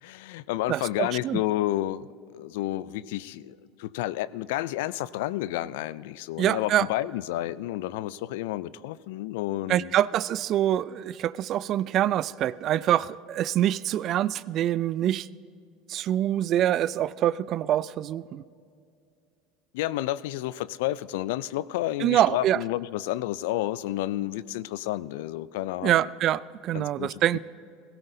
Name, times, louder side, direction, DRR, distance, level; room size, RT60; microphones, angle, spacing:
voice 1, 0.0-2.1 2.3-9.9 19.7-26.1 26.7-27.4, left 15 dB, 75° left, 19 dB, 0.3 m, -30 dB
voice 2, 0.7-1.4 6.4-6.9 9.7-15.3 15.9-18.4 22.0-22.6 25.8-27.4, right 12 dB, 50° right, 19 dB, 0.3 m, -25 dB
17.0 x 17.0 x 2.7 m, 2.4 s
hypercardioid pair, 85°, 0 cm